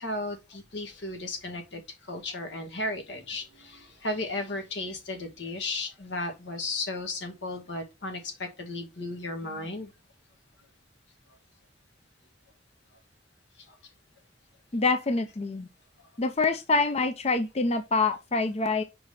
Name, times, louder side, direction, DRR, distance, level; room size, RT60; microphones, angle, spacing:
voice 1, 0.0-9.9 13.6-13.8, left 2 dB, 80° left, 2.0 m, -35 dB
voice 2, 14.7-15.7 16.2-18.8, left 3 dB, 35° left, 0.6 m, -26 dB
5.2 x 4.6 x 5.3 m
head